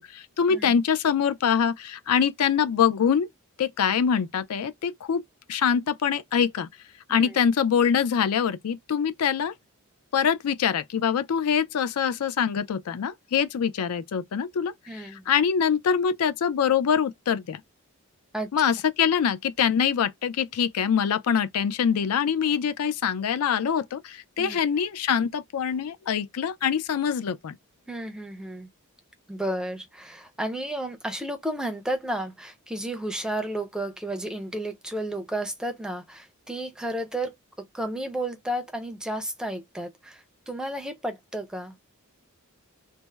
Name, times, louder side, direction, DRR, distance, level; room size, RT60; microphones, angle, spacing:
voice 1, 0.1-3.3 3.6-5.2 5.5-6.7 7.1-9.5 10.1-17.6 18.5-27.6, left 7 dB, 80° left, 0.4 m, -24 dB
voice 2, 14.9-15.3 18.3-18.5 24.4-24.6 27.9-28.7 29.3-37.3 37.7-41.8, right 1 dB, 5° right, 0.4 m, -32 dB
3.3 x 2.0 x 3.2 m
head